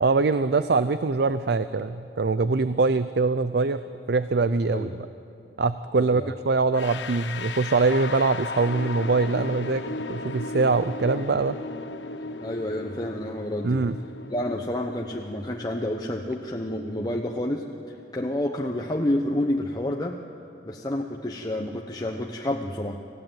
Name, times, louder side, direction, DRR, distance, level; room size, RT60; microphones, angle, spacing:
voice 1, 0.0-3.8 4.1-5.0 5.6-9.8 10.1-11.6 13.6-13.9, right 3 dB, 60° right, 13 dB, 0.5 m, -23 dB
voice 2, 6.0-6.3 12.4-13.8 14.3-20.2 20.6-23.0, left 1 dB, 20° left, 1 dB, 0.9 m, -29 dB
sound 1, 6.7-17.6, left 3 dB, 80° left, 0.9 m, -37 dB
25.5 x 15.5 x 9.1 m, 2.8 s
head